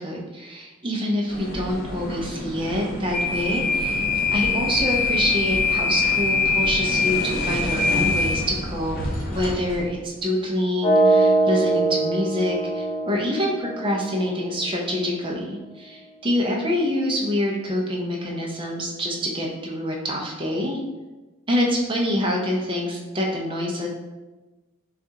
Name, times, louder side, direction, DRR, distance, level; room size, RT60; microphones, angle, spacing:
voice 1, 0.0-4.0 4.3-9.0 9.3-20.8 21.5-23.9, left 1 dB, 25° right, -1 dB, 0.6 m, -26 dB
sound 1, 1.3-9.9, left 3 dB, 40° left, 1.0 m, -24 dB
sound 2, 10.8-14.8, right 2 dB, 25° left, 0.4 m, -22 dB
6.6 x 2.4 x 2.8 m, 1.2 s
head